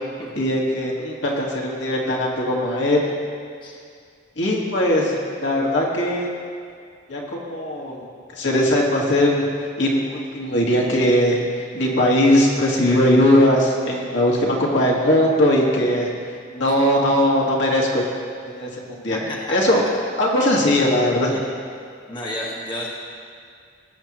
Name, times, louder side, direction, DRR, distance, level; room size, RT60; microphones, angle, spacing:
voice 1, 0.4-3.1 4.4-6.3 7.1-8.0 8.4-9.5 9.8-16.1 16.5-18.0 18.5-19.2 19.5-19.8 20.2-21.3, left 1 dB, 65° left, -3 dB, 1.8 m, -19 dB
voice 2, 19.1-19.6 20.4-20.5 21.3-21.4 22.1-22.9, left 1 dB, 25° left, -4 dB, 1.3 m, -31 dB
20.0 x 8.0 x 3.0 m, 2.2 s
head